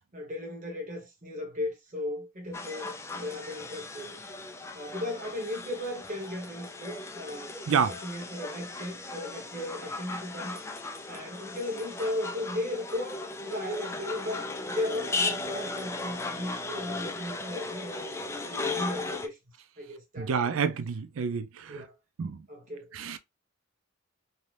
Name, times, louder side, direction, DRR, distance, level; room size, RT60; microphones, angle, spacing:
voice 1, 0.1-4.2 4.7-10.6 11.1-19.4 19.8-20.5 21.3-21.4 21.7-21.9 22.5-22.9, left 1 dB, 40° right, 1.1 m, -36 dB
sound 1, 2.5-19.3, left 3 dB, 15° left, 0.3 m, -37 dB
voice 2, 20.2-21.8 22.2-22.4 23.0-23.2, right 6 dB, 85° right, 0.4 m, -28 dB
2.7 x 2.1 x 3.2 m
head